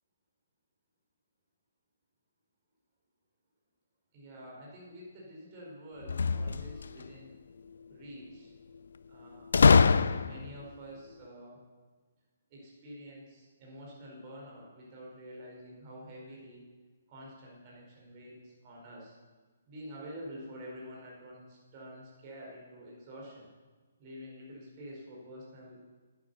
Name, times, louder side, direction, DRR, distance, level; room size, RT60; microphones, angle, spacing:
voice 1, 4.1-7.4 7.9-8.5 9.1-11.6 12.5-16.7 17.1-19.2 19.7-23.5 24.0-25.8, equal, 35° right, -3 dB, 4.5 m, -48 dB
sound 1, 6.0-7.1 9.5-10.6, left 5 dB, 70° left, 0.5 m, -23 dB
10.0 x 9.4 x 6.9 m, 1.3 s
figure-of-eight pair, 135°, 0 cm